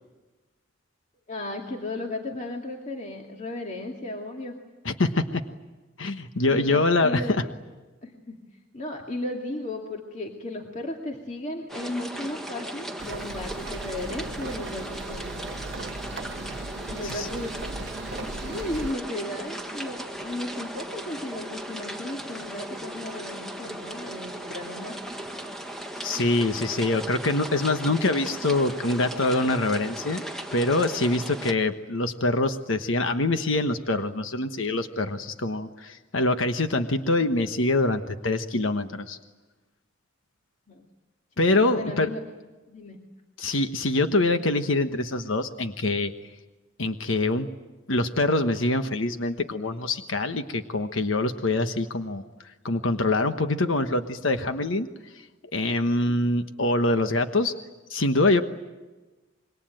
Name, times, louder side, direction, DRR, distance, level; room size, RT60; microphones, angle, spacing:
voice 1, 1.3-4.6 6.5-7.4 8.0-8.4 8.7-15.6 16.7-17.6 18.2-25.0 40.7-40.8 41.4-42.2 42.7-43.0, left 1 dB, 40° left, 1 dB, 2.4 m, -35 dB
voice 2, 4.8-5.4 6.0-7.4 17.0-17.3 26.0-30.2 30.5-39.2 41.4-42.1 43.4-46.1 46.8-47.5 47.9-52.2 52.6-54.9 55.5-57.5 57.9-58.4, left 2 dB, 85° left, 8 dB, 1.3 m, -24 dB
sound 1, 11.7-31.5, right 1 dB, ahead, 1.5 m, -37 dB
sound 2, 13.0-18.9, right 2 dB, 60° right, 0.8 m, -37 dB
26.5 x 22.5 x 9.0 m, 1.2 s
head